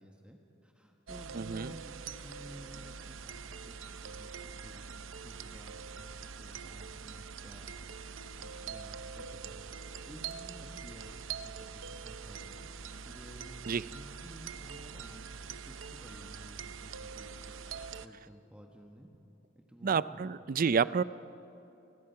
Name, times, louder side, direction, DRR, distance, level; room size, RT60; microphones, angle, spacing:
voice 1, 0.0-3.8 4.0-4.4 4.6-4.9 5.2-8.1 8.4-9.7 10.0-12.7 13.0-17.6 18.0-19.1 19.5-20.2, equal, 5° right, 1 dB, 1.5 m, -53 dB
sound 1, 1.1-18.1, right 6 dB, 85° right, 0.7 m, -44 dB
voice 2, 1.3-1.7 13.7-13.8 19.8-21.0, right 6 dB, 45° right, 17 dB, 0.4 m, -29 dB
29.0 x 20.5 x 5.7 m, 2.9 s
head